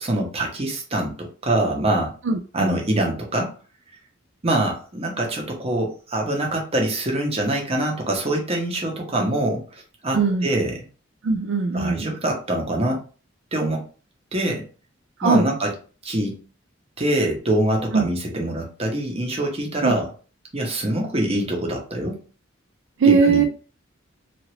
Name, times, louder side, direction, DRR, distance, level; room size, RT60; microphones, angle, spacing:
voice 1, 0.0-2.1 2.5-3.5 4.4-10.8 11.7-13.0 13.5-13.8 14.3-14.6 15.2-15.7 16.0-16.4 17.0-20.1 20.5-22.2 23.0-23.4, right 1 dB, 30° right, 1 dB, 0.8 m, -24 dB
voice 2, 2.3-2.7 10.1-10.5 11.2-12.1 15.2-15.5 17.9-18.0 19.8-19.9 23.0-23.4, right 4 dB, 65° right, 4 dB, 0.4 m, -19 dB
2.9 x 2.5 x 3.1 m, 0.37 s
head